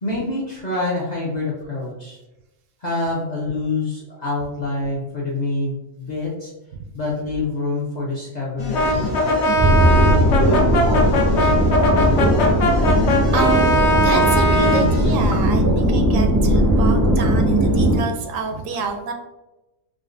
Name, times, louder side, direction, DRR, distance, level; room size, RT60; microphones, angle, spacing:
voice 1, 0.0-2.2 2.8-6.5 6.9-9.4, left 2 dB, 45° left, -4 dB, 0.6 m, -26 dB
sound 1, 8.6-15.5, left 2 dB, 85° left, 1.2 m, -27 dB
Brass instrument, 8.7-14.9, left 1 dB, 65° left, 0.9 m, -20 dB
sound 2, 9.6-18.0, right 1 dB, 20° right, 0.4 m, -18 dB
voice 2, 13.3-19.1, right 3 dB, 80° right, 4 dB, 1.0 m, -28 dB
4.8 x 2.2 x 2.5 m, 0.98 s
omnidirectional pair, 1.4 m